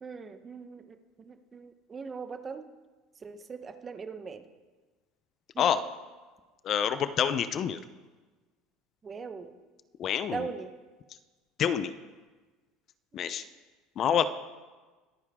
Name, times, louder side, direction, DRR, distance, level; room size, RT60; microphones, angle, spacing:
voice 1, 0.0-2.7 3.2-4.4 5.5-5.7 9.0-9.6 10.3-10.7 13.1-13.3, right 5 dB, 25° right, 9 dB, 0.9 m, -40 dB
voice 2, 6.6-7.8 10.0-10.5 11.6-11.9 13.1-13.4 14.0-14.2, left 8 dB, 40° left, 13 dB, 0.6 m, -27 dB
22.0 x 9.8 x 3.6 m, 1.3 s
supercardioid pair, 130°, 0 cm